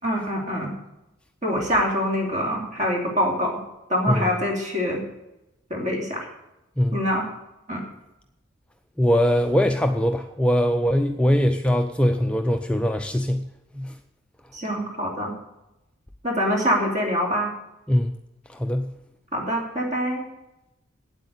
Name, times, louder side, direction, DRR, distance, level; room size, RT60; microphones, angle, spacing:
voice 1, 0.0-0.7 1.4-3.6 3.9-5.0 5.7-6.3 6.9-7.3 7.7-7.8 14.5-15.3 16.2-17.5 19.3-20.2, equal, 35° right, 0 dB, 2.9 m, -25 dB
voice 2, 9.0-13.5 13.7-13.9 17.9-18.1 18.5-18.9, equal, 5° left, 6 dB, 0.4 m, -21 dB
8.9 x 8.3 x 8.2 m, 0.93 s
head